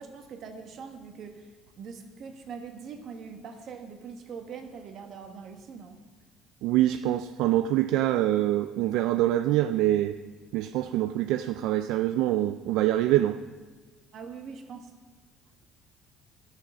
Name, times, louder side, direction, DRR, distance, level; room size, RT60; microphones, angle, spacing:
voice 1, 0.0-1.5 1.8-6.0 14.1-14.9, right 6 dB, 50° right, 1.3 m, -42 dB
voice 2, 6.6-10.2 10.5-13.4, right 14 dB, 75° right, 0.3 m, -25 dB
13.0 x 6.4 x 5.4 m
cardioid pair, 120°, 0 cm